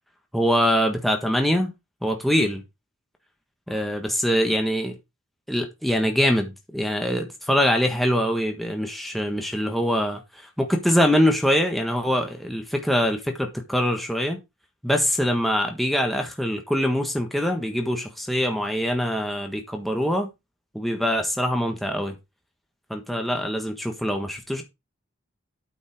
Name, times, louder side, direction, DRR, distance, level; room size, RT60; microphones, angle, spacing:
voice 1, 0.3-1.7 2.0-2.6 3.7-5.0 5.5-14.4 14.8-20.3 20.7-22.2 22.9-24.6, equal, ahead, 1.5 m, -23 dB
8.9 x 5.4 x 4.9 m
head